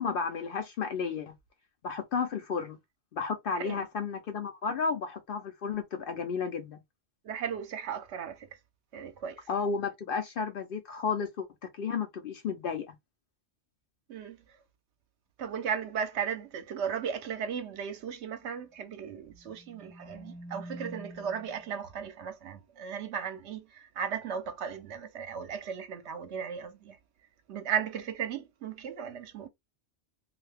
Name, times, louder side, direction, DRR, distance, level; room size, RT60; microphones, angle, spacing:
voice 1, 0.0-1.3 1.8-2.8 3.1-6.8 9.5-11.5 11.7-13.0, left 5 dB, 60° left, 0.6 m, -32 dB
voice 2, 7.2-8.5 8.9-9.4 14.1-14.4 15.4-27.0 27.5-29.5, right 7 dB, 70° right, 0.9 m, -36 dB
sound 1, 19.2-21.8, equal, 25° right, 0.7 m, -47 dB
2.7 x 2.4 x 3.3 m
omnidirectional pair, 1.2 m